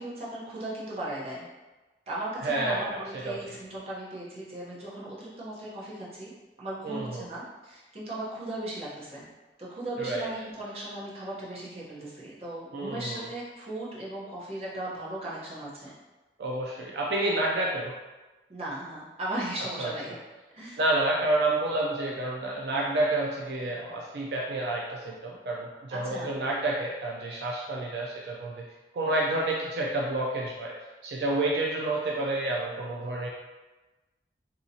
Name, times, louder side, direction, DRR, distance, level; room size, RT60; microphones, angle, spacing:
voice 1, 0.0-1.5 2.1-6.3 6.6-9.3 9.6-15.9 18.5-20.2 20.5-20.8 25.9-26.3, right 1 dB, 35° right, -7 dB, 0.7 m, -37 dB
voice 2, 2.4-3.4 6.8-7.2 10.0-10.3 12.7-13.3 16.4-17.9 19.8-19.9 20.8-28.6 28.9-30.7 31.0-33.3, right 2 dB, 70° right, -2 dB, 0.3 m, -29 dB
2.8 x 2.7 x 2.7 m, 1.2 s
head